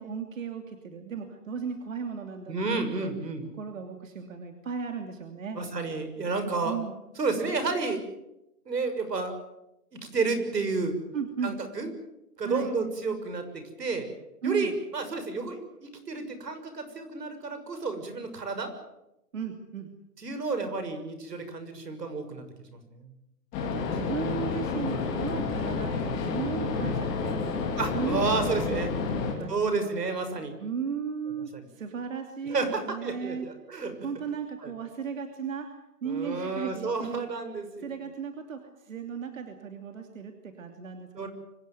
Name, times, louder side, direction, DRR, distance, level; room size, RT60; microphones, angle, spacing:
voice 1, 0.0-3.1 3.6-5.6 6.6-6.9 11.1-11.6 12.4-12.7 14.4-14.7 19.3-19.9 23.6-27.5 27.9-28.3 28.7-29.9 30.6-33.5 34.0-35.7 36.0-37.3 37.8-41.3, right 6 dB, 55° right, 5 dB, 2.9 m, -36 dB
voice 2, 2.5-3.4 5.6-6.8 7.2-8.0 8.6-9.3 10.1-11.0 11.4-11.9 12.4-14.1 14.4-18.7 20.2-22.4 22.7-23.1 27.8-28.9 29.5-30.6 32.5-34.0 34.6-34.7 36.0-37.9 41.1-41.3, right 4 dB, 85° right, 8 dB, 6.6 m, -31 dB
sound 1, 23.5-29.3, left 4 dB, 15° left, 2.8 m, -30 dB
25.0 x 17.5 x 9.4 m, 0.88 s
hypercardioid pair, 175°, 47 cm